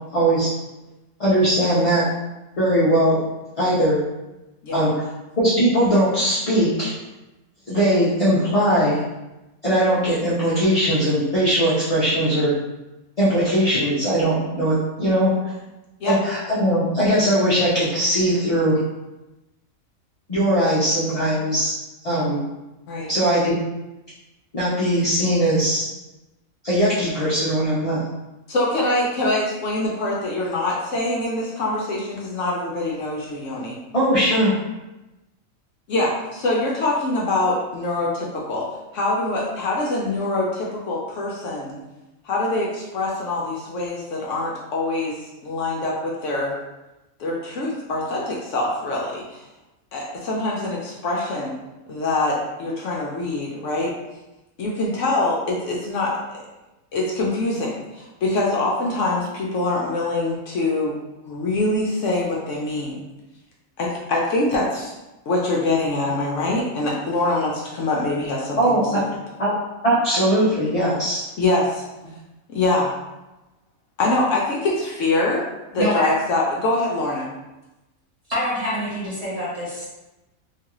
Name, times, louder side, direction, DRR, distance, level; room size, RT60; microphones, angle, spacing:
voice 1, 0.1-0.5 1.2-2.0 2.6-3.2 3.6-4.0 4.7-4.9 5.4-6.9 7.7-9.0 9.6-12.5 13.2-15.3 16.0-18.8 20.3-21.7 22.0-22.4 23.1-23.6 24.5-25.9 26.6-28.0 33.9-34.5 68.6-69.0 69.4-69.5 69.8-71.2, right 1 dB, 45° left, -9 dB, 0.4 m, -20 dB
voice 2, 28.5-33.8 35.9-38.7 38.9-41.8 42.2-46.5 47.2-49.4 49.9-51.5 51.9-53.9 54.6-56.4 56.9-61.0 61.3-63.0 63.8-64.9 65.3-69.0 71.4-71.8 72.5-72.9 74.0-75.4 75.7-77.3, left 2 dB, 70° left, -3 dB, 0.9 m, -24 dB
voice 3, 75.8-76.1 78.3-79.9, equal, 30° right, -9 dB, 0.9 m, -25 dB
3.0 x 2.4 x 2.9 m, 1.0 s
omnidirectional pair, 1.5 m